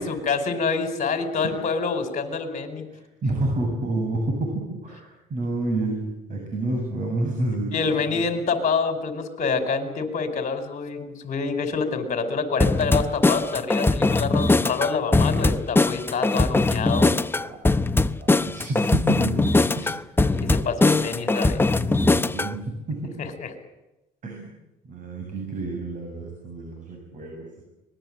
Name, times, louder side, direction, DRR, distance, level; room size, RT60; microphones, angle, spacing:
voice 1, 0.0-2.8 7.7-17.1 19.8-19.9 20.3-21.7 23.2-23.5, left 4 dB, 45° left, 7 dB, 5.0 m, -27 dB
voice 2, 2.9-7.7 8.1-8.2 16.2-17.6 18.2-19.4 19.7-20.0 21.8-22.6 22.9-23.1 24.2-24.5 24.8-27.6, right 2 dB, 50° right, 2 dB, 7.6 m, -30 dB
sound 1, 12.6-22.5, left 2 dB, 15° left, 0.8 m, -21 dB
24.5 x 21.0 x 9.0 m, 0.96 s
cardioid pair, 110°, 17 cm